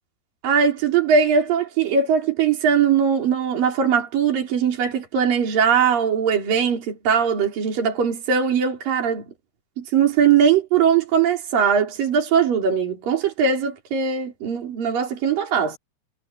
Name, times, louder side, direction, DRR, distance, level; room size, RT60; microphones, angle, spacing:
voice 1, 0.4-9.2 9.8-15.8, right 7 dB, 65° right, 5.9 m, -20 dB
omnidirectional pair, 4.3 m